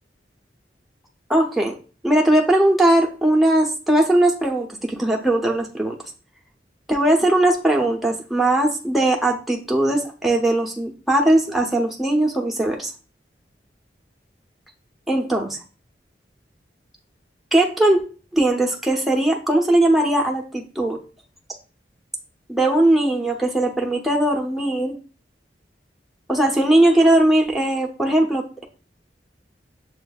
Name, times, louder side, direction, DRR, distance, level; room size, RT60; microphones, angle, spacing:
voice 1, 1.3-1.8 2.0-6.0 6.9-12.9 15.1-15.6 17.5-18.0 18.3-21.0 22.5-25.0 26.3-28.6, right 1 dB, ahead, -1 dB, 0.6 m, -19 dB
7.1 x 2.5 x 2.3 m, 0.36 s
head